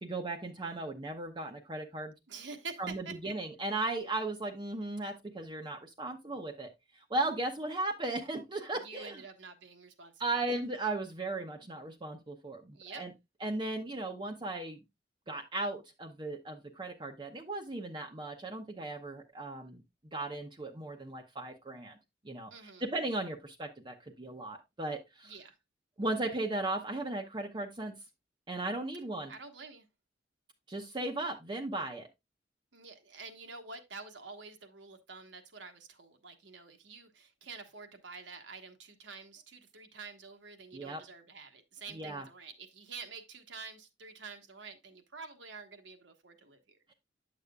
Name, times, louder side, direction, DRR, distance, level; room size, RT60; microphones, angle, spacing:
voice 1, 0.0-2.1 2.8-9.2 10.2-13.1 13.4-14.8 15.3-19.8 20.1-22.0 22.2-25.3 26.0-27.9 28.5-29.3 30.7-32.1 40.7-41.0 41.9-42.2, right 2 dB, 25° right, 0.7 m, -36 dB
voice 2, 2.3-3.3 8.8-10.6 12.7-13.0 22.5-22.8 25.2-25.5 29.3-29.9 32.7-46.9, right 4 dB, 75° right, 1.3 m, -48 dB
9.7 x 6.7 x 2.3 m
head